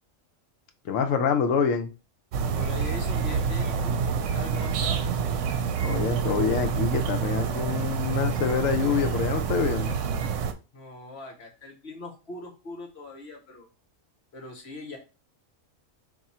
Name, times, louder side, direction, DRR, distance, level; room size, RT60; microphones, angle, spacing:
voice 1, 0.8-1.9 5.8-9.9, left 6 dB, 80° left, 5 dB, 1.0 m, -26 dB
sound 1, 2.3-10.5, right 6 dB, 75° right, 0.9 m, -27 dB
voice 2, 2.5-5.0 10.7-13.7 14.3-15.0, left 2 dB, 55° left, 2 dB, 1.3 m, -41 dB
3.6 x 2.6 x 4.2 m, 0.31 s
omnidirectional pair, 1.3 m